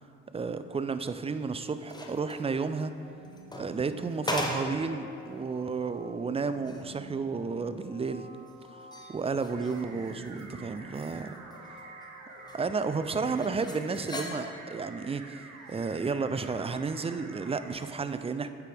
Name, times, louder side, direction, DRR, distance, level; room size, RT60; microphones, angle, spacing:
voice 1, 0.3-2.9 3.5-8.3 9.1-11.4 12.5-18.5, right 4 dB, 20° right, 11 dB, 0.3 m, -32 dB
sound 1, 1.4-2.5 3.2-4.9 5.3-5.4 5.9-6.0 6.4-6.9 8.5-10.5 10.8-12.1 12.5-12.6 13.4-14.7 15.6-15.8, left 1 dB, 15° left, 0.9 m, -39 dB
sound 2, 3.0-14.3, equal, 90° left, 0.8 m, -50 dB
sound 3, 9.5-17.7, right 3 dB, 75° right, 0.9 m, -48 dB
8.2 x 6.0 x 3.4 m, 2.6 s
supercardioid pair, 65°, 30 cm